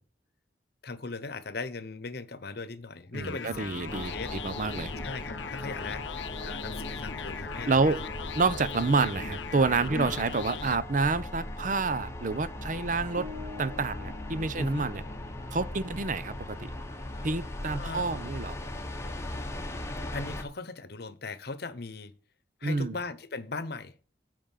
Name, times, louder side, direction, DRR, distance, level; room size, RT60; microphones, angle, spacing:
voice 1, 0.8-4.3 5.0-8.0 9.9-10.1 14.6-14.9 17.1-17.3 17.6-18.0 20.1-22.2 22.6-24.0, left 3 dB, 65° left, 1.0 m, -39 dB
sound 1, 3.1-10.8, left 6 dB, 85° left, 0.7 m, -40 dB
voice 2, 3.1-4.9 7.7-8.0 8.4-13.3 13.6-15.0 15.5-16.3 17.2-18.5 22.6-23.0, right 4 dB, 45° right, 0.7 m, -28 dB
sound 2, 3.9-20.4, left 1 dB, 15° left, 1.4 m, -39 dB
sound 3, 13.2-15.4, left 4 dB, 75° right, 1.0 m, -46 dB
9.0 x 5.2 x 7.4 m
head